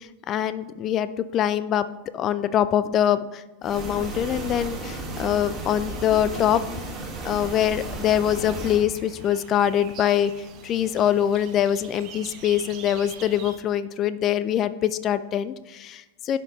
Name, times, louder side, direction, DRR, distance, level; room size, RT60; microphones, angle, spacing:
voice 1, 0.3-1.9 2.1-6.6 7.2-10.3 10.6-16.4, left 10 dB, 30° left, 15 dB, 0.4 m, -24 dB
sound 1, 3.6-8.8, right 2 dB, 20° right, 1.8 m, -34 dB
sound 2, 8.2-13.6, right 7 dB, 35° right, 1.0 m, -44 dB
11.5 x 5.7 x 3.0 m, 1.1 s
figure-of-eight pair, 90°, 0 cm